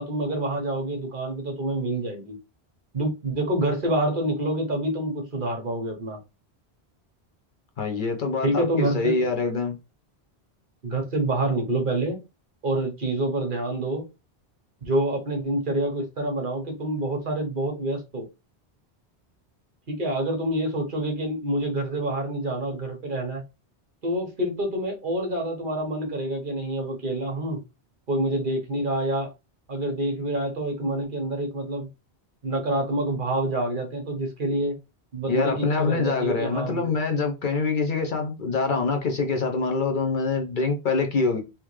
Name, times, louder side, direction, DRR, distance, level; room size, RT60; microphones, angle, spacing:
voice 1, 0.0-2.4 2.9-6.2 8.4-9.3 10.8-12.2 12.6-14.1 14.8-18.3 19.9-23.4 24.0-27.6 28.1-29.3 29.7-31.9 32.4-34.8 35.1-36.9, right 1 dB, 50° right, 1.2 m, -27 dB
voice 2, 7.8-9.7 35.3-41.4, left 4 dB, 55° left, 0.7 m, -25 dB
3.5 x 2.9 x 3.1 m
omnidirectional pair, 1.1 m